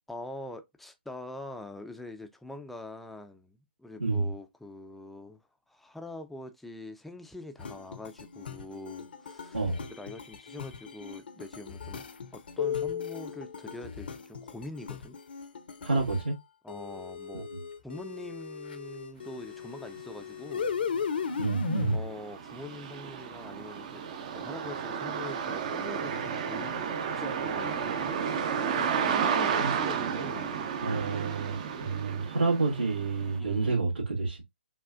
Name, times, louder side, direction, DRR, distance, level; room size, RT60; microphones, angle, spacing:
voice 1, 0.1-5.4 5.7-9.6 9.9-12.0 12.3-15.2 16.6-17.5 17.8-20.8 21.9-24.0 24.3-26.8 27.2-30.6 33.4-33.9, left 2 dB, ahead, 0.5 m, -44 dB
sound 1, 7.6-16.3 16.7-22.0, left 6 dB, 60° left, 0.7 m, -37 dB
voice 2, 15.8-16.4 17.5-17.6 21.4-22.0 29.6-29.7 30.8-34.4, right 3 dB, 75° right, 1.9 m, -29 dB
sound 2, 20.0-20.1 20.5-33.4, right 7 dB, 40° right, 0.7 m, -32 dB
5.8 x 2.4 x 2.4 m
figure-of-eight pair, 130°, 6 cm